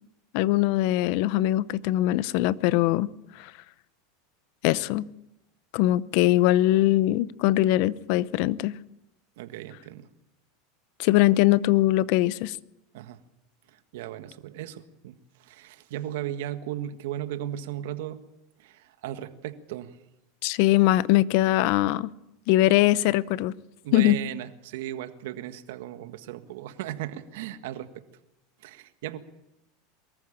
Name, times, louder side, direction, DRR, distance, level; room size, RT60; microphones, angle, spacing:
voice 1, 0.3-3.1 3.4-3.5 4.6-5.1 5.7-8.7 11.0-12.6 20.4-22.1 22.5-23.5 23.9-24.2, left 16 dB, 60° left, 0.7 m, -22 dB
voice 2, 9.4-10.1 12.9-13.2 13.7-18.2 18.6-20.0 23.8-28.0 28.6-29.2, right 12 dB, 75° right, 1.7 m, -36 dB
23.0 x 14.5 x 8.8 m
supercardioid pair, 120°, 0 cm